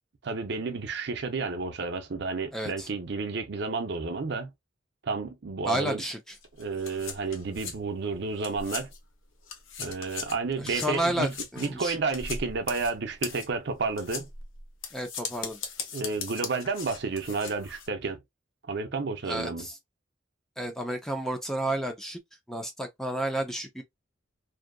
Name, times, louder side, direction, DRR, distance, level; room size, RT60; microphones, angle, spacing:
voice 1, 0.2-4.5 5.0-6.0 6.6-8.9 9.8-14.3 15.9-18.2 18.7-19.7, right 4 dB, 60° right, 0.6 m, -31 dB
voice 2, 2.5-2.9 5.7-6.2 10.6-11.9 14.9-15.6 19.3-19.8 20.6-22.2 22.5-23.8, right 1 dB, ahead, 0.5 m, -31 dB
sound 1, 6.3-9.1 9.4-17.9, left 5 dB, 85° left, 0.7 m, -39 dB
2.7 x 2.4 x 2.2 m
head